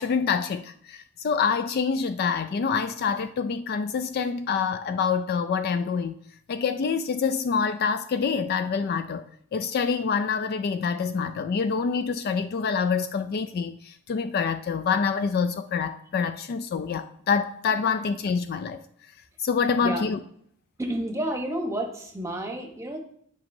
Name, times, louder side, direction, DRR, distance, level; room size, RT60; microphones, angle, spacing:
voice 1, 0.0-6.2 6.5-9.3 9.5-18.8 19.4-20.2, left 5 dB, 45° left, 0.3 m, -26 dB
voice 2, 20.8-23.0, right 1 dB, 15° right, 1.0 m, -30 dB
10.5 x 5.1 x 2.7 m
head